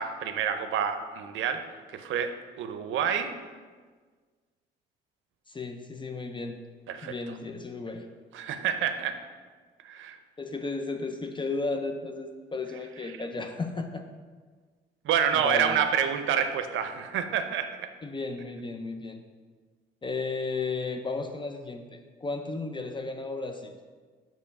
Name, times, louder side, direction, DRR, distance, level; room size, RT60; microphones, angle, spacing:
voice 1, 0.0-3.3 6.9-7.3 8.3-9.2 9.8-10.2 15.0-17.9, right 8 dB, 75° right, 8 dB, 0.6 m, -28 dB
voice 2, 5.5-6.6 7.0-8.1 10.4-14.1 15.3-15.8 18.0-19.2 20.0-23.7, left 3 dB, 25° left, 5 dB, 0.5 m, -34 dB
6.7 x 3.1 x 5.3 m, 1.5 s
cardioid pair, 90°, 20 cm